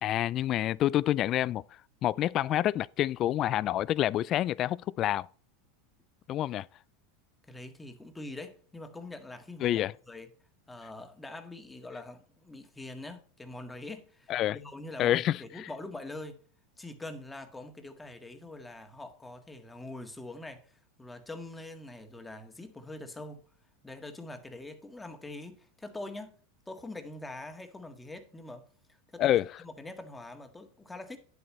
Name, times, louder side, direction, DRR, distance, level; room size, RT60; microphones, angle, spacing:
voice 1, 0.0-1.6 2.0-5.3 6.3-6.7 9.6-9.9 14.3-14.6 15.0-15.7 29.2-29.5, left 13 dB, 40° left, 0.3 m, -27 dB
voice 2, 7.5-10.3 10.7-16.4 16.8-20.7 21.0-23.4 23.8-26.4 26.7-28.7 29.1-29.3 29.6-31.2, left 2 dB, 10° left, 1.6 m, -44 dB
9.8 x 8.0 x 3.1 m
hypercardioid pair, 110°, 0 cm